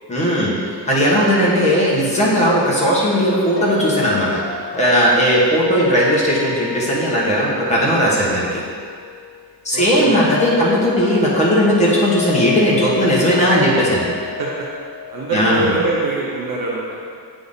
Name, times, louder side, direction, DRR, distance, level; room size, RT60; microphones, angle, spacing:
voice 1, 0.1-4.4 4.8-8.6 9.6-14.1 15.3-15.7, equal, 15° left, -7 dB, 1.3 m, -17 dB
sound 1, 3.6-16.4, left 10 dB, 35° left, 0.5 m, -31 dB
voice 2, 9.7-10.6 14.4-14.7 15.1-17.1, right 3 dB, 55° right, -4 dB, 0.9 m, -24 dB
8.3 x 3.7 x 4.0 m, 2.1 s
cardioid pair, 175°, 45 cm